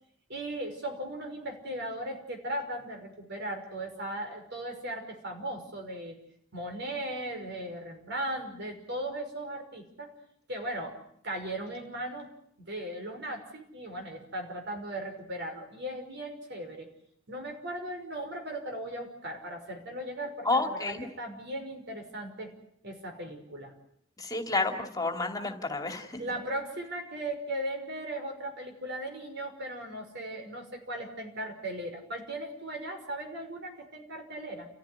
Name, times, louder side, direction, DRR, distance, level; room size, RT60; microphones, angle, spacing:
voice 1, 0.3-6.2 6.5-10.1 10.5-11.0 11.2-12.3 12.7-16.9 17.3-22.5 22.8-23.7 26.2-34.7, right 1 dB, 60° right, 4 dB, 5.8 m, -37 dB
voice 2, 20.4-21.1 24.2-26.2, left 3 dB, 20° left, 5 dB, 2.5 m, -30 dB
30.0 x 15.5 x 9.6 m, 0.69 s
head